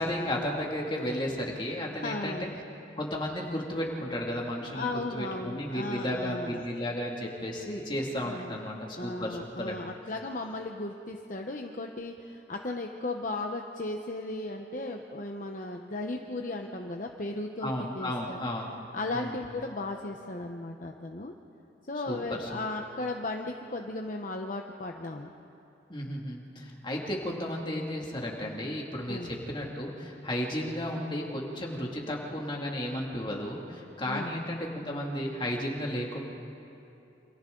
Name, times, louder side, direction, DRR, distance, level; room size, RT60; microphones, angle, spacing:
voice 1, 0.0-2.5 3.0-9.8 17.6-18.7 19.1-19.4 22.1-22.6 25.9-36.2, equal, 25° left, -1 dB, 2.4 m, -33 dB
voice 2, 2.0-2.6 4.7-6.7 8.2-8.6 9.0-18.4 18.9-21.3 21.9-25.3 29.1-29.3 34.1-34.4, left 2 dB, 45° left, 2 dB, 0.9 m, -36 dB
28.0 x 26.5 x 3.9 m, 2.9 s
head